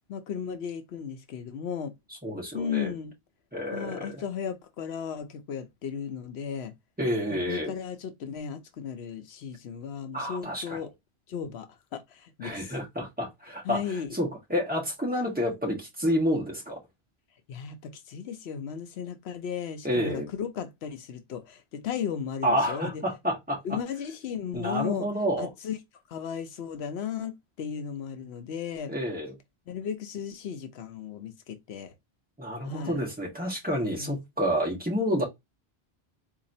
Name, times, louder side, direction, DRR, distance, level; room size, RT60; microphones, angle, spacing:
voice 1, 0.1-1.9 2.5-3.1 3.7-6.7 7.3-10.9 11.3-12.7 13.6-14.1 17.5-23.0 23.6-25.1 25.4-25.8 26.1-28.9 29.7-32.0 32.6-33.0 33.9-34.1, left 7 dB, 80° left, 0.9 m, -35 dB
voice 2, 2.2-2.9 3.5-4.1 7.0-7.7 10.1-10.8 12.4-13.8 14.1-16.8 19.8-20.3 22.4-23.8 24.5-25.5 28.9-29.3 32.4-35.2, equal, 10° right, 1.3 m, -29 dB
4.0 x 2.8 x 2.7 m
omnidirectional pair, 1.1 m